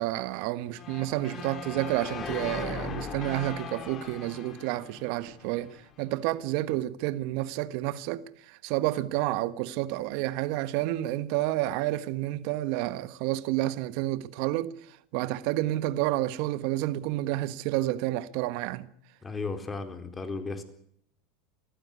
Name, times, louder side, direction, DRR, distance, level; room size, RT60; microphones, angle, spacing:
voice 1, 0.0-14.7 15.1-18.9, right 16 dB, 60° right, 1.4 m, -30 dB
sound 1, 0.8-5.8, left 6 dB, 35° left, 3.7 m, -39 dB
voice 2, 19.2-20.6, left 4 dB, 20° left, 4.1 m, -35 dB
22.5 x 14.5 x 9.6 m
hypercardioid pair, 90°, 0 cm